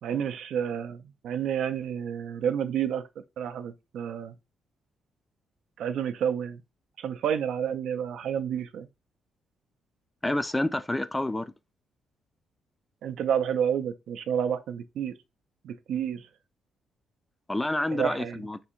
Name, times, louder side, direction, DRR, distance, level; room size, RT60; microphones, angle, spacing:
voice 1, 0.0-3.0 3.4-4.3 5.8-6.6 7.0-8.9 13.0-15.1 15.6-16.3 17.9-18.4, right 8 dB, 75° right, 0.4 m, -30 dB
voice 2, 10.2-11.5 17.5-18.6, left 1 dB, 10° left, 0.3 m, -28 dB
3.4 x 2.6 x 4.2 m
cardioid pair, 90°, 0 cm